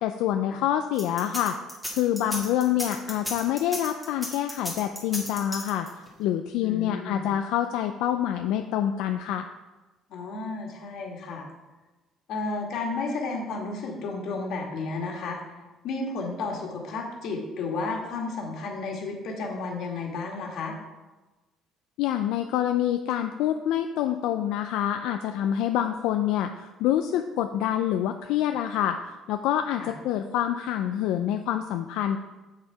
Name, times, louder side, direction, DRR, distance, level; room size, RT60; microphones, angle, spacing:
voice 1, 0.0-1.6 1.9-5.9 6.2-9.5 22.0-32.2, left 11 dB, 85° left, 6 dB, 0.4 m, -26 dB
sound 1, 0.9-6.1, left 1 dB, ahead, 1.6 m, -34 dB
voice 2, 6.6-7.2 10.1-11.5 12.3-15.4 15.8-20.8 29.8-29.9, left 3 dB, 60° left, 0 dB, 1.8 m, -32 dB
7.5 x 6.5 x 4.6 m, 1.1 s
cardioid pair, 150°, 0 cm